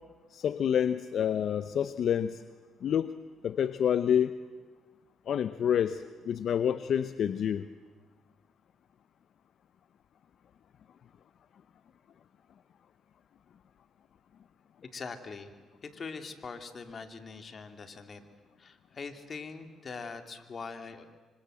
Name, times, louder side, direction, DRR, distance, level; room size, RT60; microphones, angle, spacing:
voice 1, 0.3-2.4 2.8-3.1 3.4-4.3 5.3-7.7, left 9 dB, 65° left, 13 dB, 0.7 m, -28 dB
voice 2, 14.8-15.5 15.8-18.2 18.6-21.2, left 4 dB, 40° left, 8 dB, 2.5 m, -42 dB
25.5 x 25.5 x 7.7 m, 1.3 s
cardioid pair, 90°, 0 cm